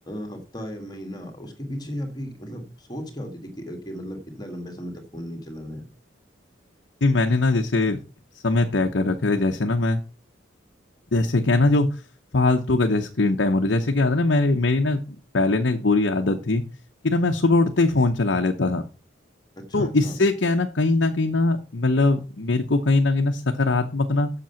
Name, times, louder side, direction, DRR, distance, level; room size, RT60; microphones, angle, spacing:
voice 1, 0.0-5.9 19.6-20.2, equal, 20° left, 4 dB, 1.9 m, -35 dB
voice 2, 7.0-8.0 8.4-10.0 11.1-11.9 12.3-16.6 17.0-18.8 19.7-24.3, left 2 dB, 70° left, 4 dB, 0.8 m, -21 dB
7.7 x 6.8 x 5.7 m, 0.36 s
head